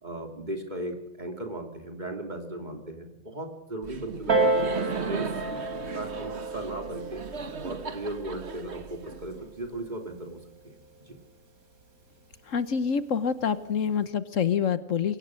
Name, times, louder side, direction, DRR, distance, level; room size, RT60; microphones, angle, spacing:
voice 1, 0.0-5.3 5.9-7.2 7.6-11.2, right 1 dB, 30° right, 4 dB, 3.2 m, -37 dB
Laughter, 3.8-9.7, right 5 dB, 50° right, 1.6 m, -37 dB
Piano, 4.3-9.5 10.3-10.4, right 2 dB, 85° right, 3.6 m, -31 dB
voice 2, 12.5-15.2, left 7 dB, 65° left, 14 dB, 1.3 m, -26 dB
23.0 x 18.0 x 6.4 m, 0.84 s
omnidirectional pair, 1.5 m